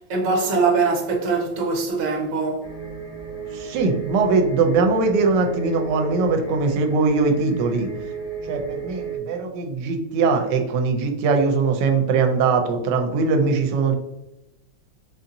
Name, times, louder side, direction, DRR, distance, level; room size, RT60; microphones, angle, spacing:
voice 1, 0.0-2.7, right 4 dB, 55° right, 1.0 m, -22 dB
sound 1, 2.6-9.2, right 7 dB, 85° left, 1.9 m, -33 dB
voice 2, 3.5-7.9 8.5-14.0, right 4 dB, 75° right, 1.2 m, -21 dB
4.1 x 2.6 x 2.6 m
omnidirectional pair, 2.0 m